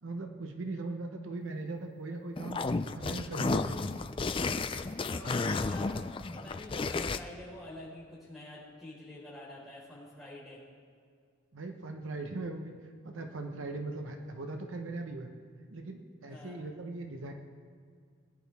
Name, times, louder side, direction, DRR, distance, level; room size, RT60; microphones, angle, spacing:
voice 1, 0.0-2.6 2.9-3.8 11.5-12.7 13.0-15.3 15.7-17.3, right 2 dB, 70° right, 4 dB, 1.0 m, -39 dB
sound 1, 2.4-7.2, left 3 dB, 25° left, 0.3 m, -32 dB
voice 2, 5.0-6.0 6.3-10.6 16.3-16.6, left 1 dB, ahead, -7 dB, 4.3 m, -47 dB
22.0 x 10.5 x 3.5 m, 2.1 s
head